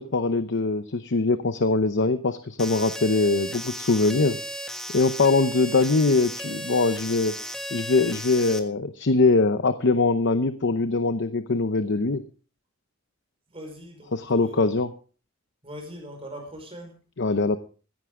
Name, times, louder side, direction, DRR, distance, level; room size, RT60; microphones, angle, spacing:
voice 1, 0.0-4.4 4.9-7.4 7.7-12.2 14.1-14.9 17.2-17.6, left 3 dB, 60° left, 10 dB, 0.8 m, -22 dB
sound 1, 2.6-8.6, equal, 5° left, 1.5 m, -35 dB
voice 2, 13.5-14.6 15.6-16.9, equal, 30° right, 4 dB, 5.4 m, -41 dB
16.0 x 14.5 x 3.7 m, 0.39 s
head